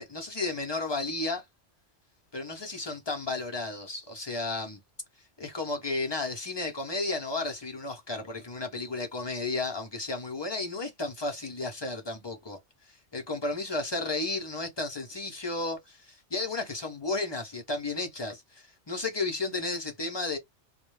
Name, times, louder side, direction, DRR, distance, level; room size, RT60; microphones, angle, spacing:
voice 1, 0.0-1.4 2.3-4.8 5.4-12.6 12.9-20.4, left 3 dB, 35° left, 0.5 m, -33 dB
2.2 x 2.1 x 3.0 m
omnidirectional pair, 1.2 m